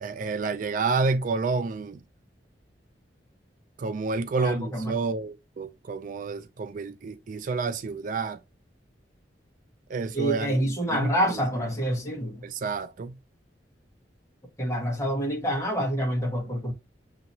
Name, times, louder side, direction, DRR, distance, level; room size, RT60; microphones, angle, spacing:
voice 1, 0.0-2.0 3.8-8.4 9.9-11.4 12.4-13.2, right 4 dB, 50° right, 0.4 m, -29 dB
voice 2, 4.3-4.9 10.1-12.4 14.6-16.7, equal, 15° left, 1.4 m, -27 dB
6.8 x 2.9 x 2.7 m
head